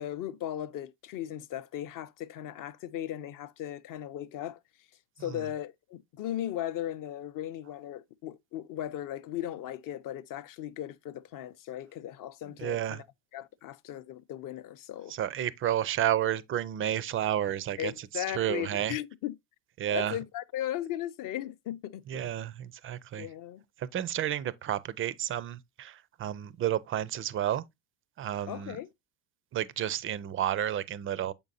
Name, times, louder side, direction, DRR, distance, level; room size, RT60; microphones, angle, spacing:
voice 1, 0.0-4.6 5.2-13.1 13.3-15.1 17.8-19.3 19.9-22.3 23.2-23.6 28.4-28.9, left 12 dB, 45° left, 0.6 m, -37 dB
voice 2, 12.6-13.0 15.1-19.0 19.8-20.2 22.1-23.3 23.8-27.6 28.2-28.8 29.5-31.3, right 11 dB, 30° right, 0.4 m, -31 dB
7.0 x 5.3 x 2.6 m
supercardioid pair, 95°, 48 cm